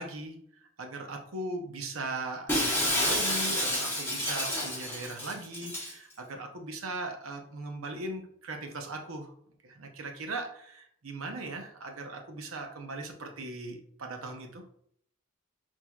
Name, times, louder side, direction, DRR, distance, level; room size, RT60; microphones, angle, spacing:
voice 1, 0.0-9.3 9.6-14.6, right 2 dB, 85° right, 4 dB, 0.8 m, -39 dB
Shatter, 2.5-5.9, left 1 dB, 10° left, 1.1 m, -29 dB
6.1 x 2.7 x 2.4 m, 0.67 s
head